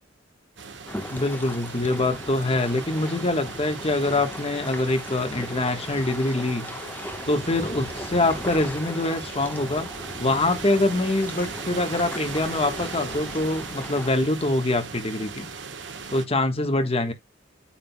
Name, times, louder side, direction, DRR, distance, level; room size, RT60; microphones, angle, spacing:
sound 1, 0.6-16.3, right 5 dB, 75° right, 1.2 m, -38 dB
sound 2, 0.9-14.1, left 1 dB, 10° left, 1.1 m, -38 dB
voice 1, 1.1-6.9 7.3-9.9 10.2-15.5 16.1-17.1, left 2 dB, 35° left, 1.3 m, -24 dB
8.6 x 7.6 x 2.2 m
head